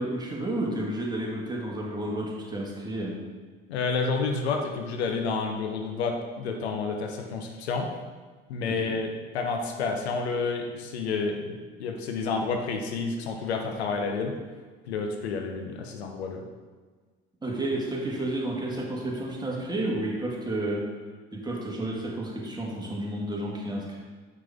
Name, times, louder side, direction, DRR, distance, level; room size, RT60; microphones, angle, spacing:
voice 1, 0.0-3.2 8.6-8.9 17.4-20.9 21.3-24.0, right 1 dB, 15° right, -3 dB, 2.0 m, -31 dB
voice 2, 3.7-7.9 8.5-14.4 14.9-16.4, left 4 dB, 80° left, 3 dB, 0.9 m, -30 dB
7.2 x 6.0 x 3.5 m, 1.4 s
hypercardioid pair, 70°, 32 cm